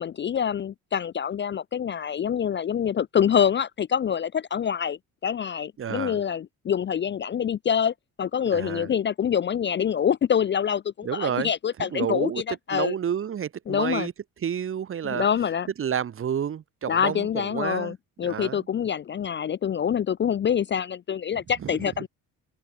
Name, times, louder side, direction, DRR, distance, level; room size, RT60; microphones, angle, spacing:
voice 1, 0.0-12.9 13.7-14.1 15.0-15.7 16.9-22.1, left 8 dB, 35° left, 0.4 m, -26 dB
voice 2, 5.8-6.2 8.5-8.9 11.0-11.5 11.8-12.4 12.7-14.1 14.4-15.3 15.8-17.9 18.2-18.6 21.6-21.7, right 8 dB, 35° right, 0.8 m, -30 dB
open air
cardioid pair, 85°, 36 cm